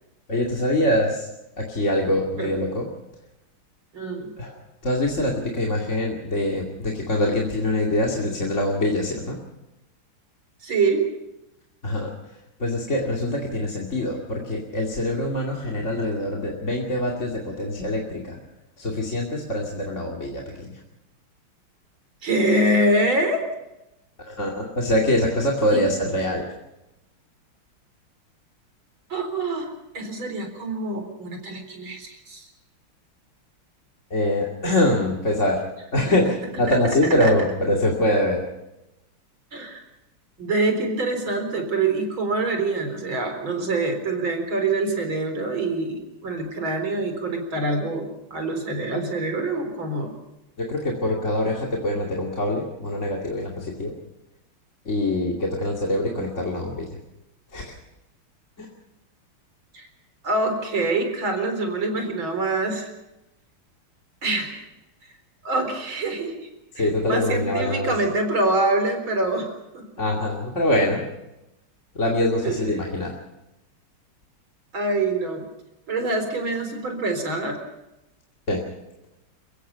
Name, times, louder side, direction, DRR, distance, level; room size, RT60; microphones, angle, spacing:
voice 1, 0.3-1.3 1.6-2.9 4.4-9.4 11.8-12.1 12.6-18.4 18.8-20.8 24.3-26.4 34.1-35.6 35.9-38.4 50.6-53.9 54.8-57.0 57.5-57.7 58.6-58.7 66.7-67.9 70.0-71.0 71.9-73.1 78.5-78.6, left 1 dB, 35° left, -1 dB, 2.8 m, -24 dB
voice 2, 3.9-4.3 10.6-11.0 22.2-23.5 25.7-25.8 29.1-29.7 29.9-32.5 36.7-36.8 37.2-37.3 39.5-39.8 40.4-50.1 59.7-59.9 60.2-62.9 64.2-64.5 65.4-66.5 66.8-69.9 72.4-72.5 74.7-75.4 75.9-77.6, right 2 dB, 70° right, 5 dB, 4.8 m, -25 dB
29.0 x 17.0 x 5.7 m, 0.92 s
omnidirectional pair, 2.3 m